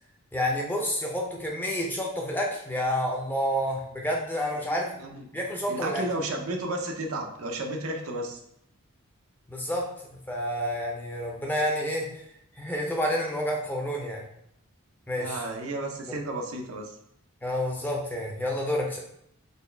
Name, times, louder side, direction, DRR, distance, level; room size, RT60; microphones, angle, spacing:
voice 1, 0.3-4.9 5.3-6.0 9.5-12.1 12.6-14.2 15.1-15.4 16.1-16.2 17.4-19.0, equal, 10° left, -1 dB, 0.5 m, -29 dB
voice 2, 4.7-5.2 5.7-8.4 15.2-16.9, right 2 dB, 80° right, 2 dB, 0.6 m, -33 dB
4.0 x 2.3 x 3.3 m, 0.75 s
head